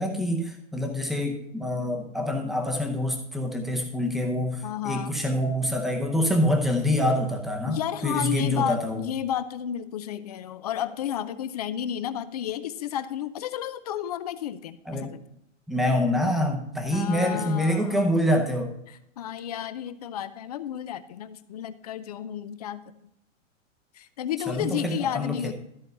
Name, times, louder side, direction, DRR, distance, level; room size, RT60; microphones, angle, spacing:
voice 1, 0.0-9.0 14.9-15.1 15.7-18.7 24.5-25.5, left 1 dB, ahead, 3 dB, 0.7 m, -26 dB
voice 2, 4.6-5.2 7.7-15.3 16.9-18.0 18.9-23.1 23.9-25.5, left 10 dB, 35° left, 13 dB, 0.4 m, -32 dB
13.5 x 4.5 x 5.4 m, 0.78 s
hypercardioid pair, 160°, 38 cm